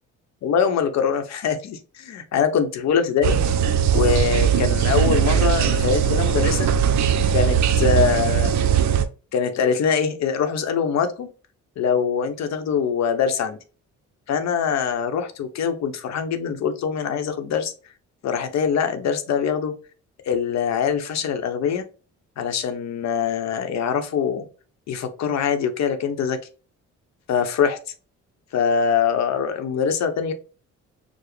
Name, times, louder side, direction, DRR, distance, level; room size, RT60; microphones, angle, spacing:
voice 1, 0.4-3.4 3.9-6.7 7.3-8.6 9.3-11.3 11.8-13.6 14.3-17.7 18.2-19.7 20.3-21.8 22.4-24.5 24.9-26.4 27.3-27.8 28.5-30.3, left 7 dB, 65° left, 8 dB, 0.7 m, -23 dB
sound 1, 3.2-9.0, right 8 dB, 70° right, 0.5 m, -19 dB
4.8 x 2.0 x 3.1 m, 0.36 s
cardioid pair, 90°, 30 cm